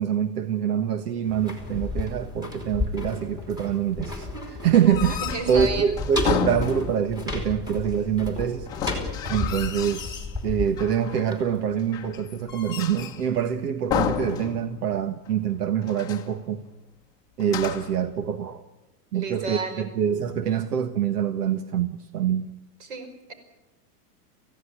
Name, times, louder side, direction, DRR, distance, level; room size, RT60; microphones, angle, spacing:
voice 1, 0.0-8.7 9.3-16.7 17.4-18.6 19.1-22.5, right 8 dB, 80° right, 9 dB, 1.6 m, -25 dB
sound 1, 1.2-12.1 12.4-12.5, left 3 dB, 10° right, 3.1 m, -33 dB
sound 2, 4.8-7.2 8.7-10.3 10.8-11.4 11.9-13.3 13.9-15.0 15.3-15.4 15.8-16.4 17.4-18.0, left 9 dB, 10° left, 1.0 m, -32 dB
voice 2, 5.2-5.9 19.1-19.8 22.8-23.3, right 3 dB, 50° right, 9 dB, 5.3 m, -32 dB
28.0 x 16.0 x 8.8 m, 1.0 s
supercardioid pair, 180°, 46 cm